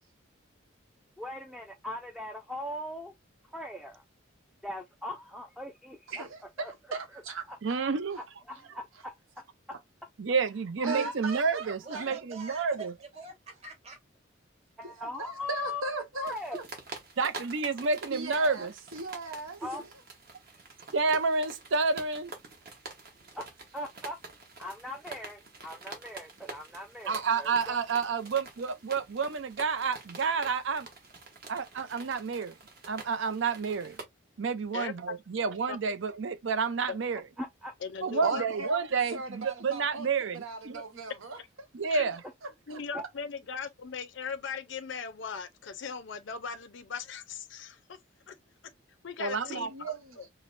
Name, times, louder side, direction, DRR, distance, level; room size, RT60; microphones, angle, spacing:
voice 1, 1.2-3.1 3.5-4.0 4.6-6.3 6.6-6.7 7.5-7.6 8.1-9.2 10.8-11.1 14.8-16.6 19.6-19.8 23.3-24.2 24.6-27.8 37.4-37.7 42.9-43.0 49.5-49.7, left 1 dB, ahead, 0.4 m, -39 dB
voice 2, 6.1-7.9 8.1-8.2 9.7-9.8 10.8-12.1 14.8-14.9 15.2-16.6 18.1-19.6 38.2-38.9 39.1-40.1 40.3-41.4 42.7-42.8 49.7-50.2, right 4 dB, 90° right, 1.0 m, -37 dB
voice 3, 7.6-8.4 10.2-12.9 17.2-18.7 20.9-22.3 27.1-30.9 31.5-32.6 32.9-34.0 34.4-37.3 38.0-40.8 41.7-42.2 49.2-49.7, right 4 dB, 65° right, 0.5 m, -30 dB
voice 4, 11.8-14.0, right 3 dB, 30° right, 1.2 m, -46 dB
sound 1, 16.2-34.0, right 3 dB, 45° right, 1.0 m, -47 dB
voice 5, 34.7-35.2 35.7-35.8 36.9-37.0 37.8-38.5 41.9-42.1 42.7-48.0 48.3-48.4 49.0-49.7 50.2-50.3, left 6 dB, 65° left, 0.5 m, -39 dB
4.9 x 2.1 x 2.5 m
head